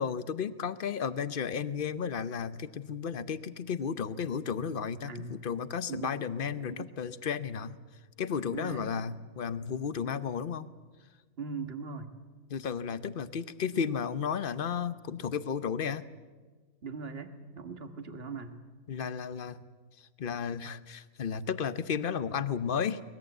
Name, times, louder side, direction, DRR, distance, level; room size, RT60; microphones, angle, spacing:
voice 1, 0.0-7.8 8.2-10.7 12.5-16.0 18.9-19.6 20.0-23.0, left 7 dB, 45° left, 14 dB, 0.9 m, -33 dB
voice 2, 5.1-5.6 5.9-6.3 6.6-6.9 8.4-9.0 11.4-12.1 16.8-18.6, right 4 dB, 50° right, 8 dB, 1.8 m, -40 dB
23.5 x 20.0 x 8.0 m, 1.4 s
omnidirectional pair, 1.4 m